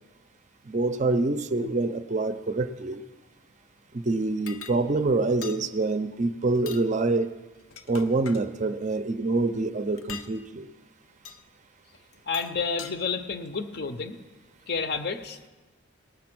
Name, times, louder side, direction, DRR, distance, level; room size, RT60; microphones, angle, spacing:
voice 1, 0.7-3.0 3.9-7.3 7.9-10.7, right 3 dB, 35° right, 10 dB, 0.5 m, -26 dB
sound 1, 4.5-4.8 5.4-5.6 6.6-6.9 7.6-8.5 10.0-10.3 11.3-11.4 12.1-12.9, left 7 dB, 85° left, 0.7 m, -42 dB
voice 2, 12.3-14.2 14.7-15.5, left 5 dB, 50° left, 9 dB, 0.7 m, -30 dB
18.5 x 7.0 x 6.0 m, 1.2 s
head